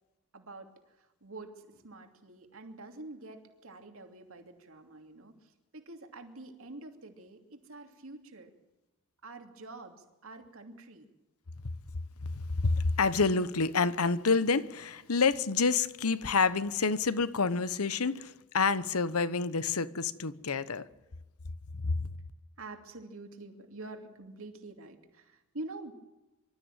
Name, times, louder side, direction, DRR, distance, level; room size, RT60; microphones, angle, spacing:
voice 1, 0.3-8.5 9.2-11.1 22.6-25.9, right 2 dB, 65° right, 2.9 m, -47 dB
voice 2, 12.2-20.9 21.8-22.1, left 4 dB, 80° left, 1.0 m, -28 dB
25.0 x 13.5 x 9.1 m
head